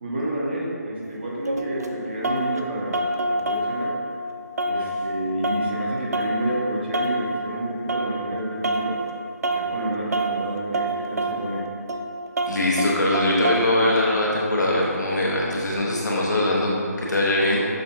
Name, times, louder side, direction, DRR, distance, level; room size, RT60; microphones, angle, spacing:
voice 1, 0.0-4.0 4.6-9.0 9.5-11.7, right 1 dB, 40° right, -4 dB, 0.8 m, -29 dB
sound 1, 1.0-2.6 2.9-4.3 4.6-8.4 8.6-9.1 9.4-13.8, right 1 dB, 65° right, 0.4 m, -27 dB
voice 2, 12.5-17.6, left 1 dB, 80° left, -5 dB, 1.0 m, -22 dB
6.4 x 2.6 x 2.3 m, 2.5 s
figure-of-eight pair, 160°, 9 cm